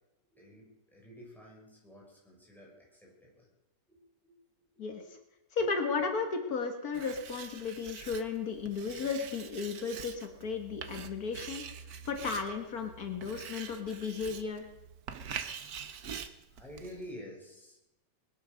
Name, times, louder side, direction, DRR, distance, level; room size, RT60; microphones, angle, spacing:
voice 1, 0.3-3.5 3.9-5.2 6.0-6.1 11.2-11.6 15.8-16.0 16.5-17.8, equal, ahead, -3 dB, 6.3 m, -51 dB
voice 2, 5.5-11.6 12.0-14.7, left 5 dB, 80° left, 5 dB, 2.1 m, -34 dB
Writing, 6.9-17.1, right 7 dB, 85° right, 1.6 m, -45 dB
21.0 x 10.5 x 6.4 m, 0.92 s
omnidirectional pair, 1.6 m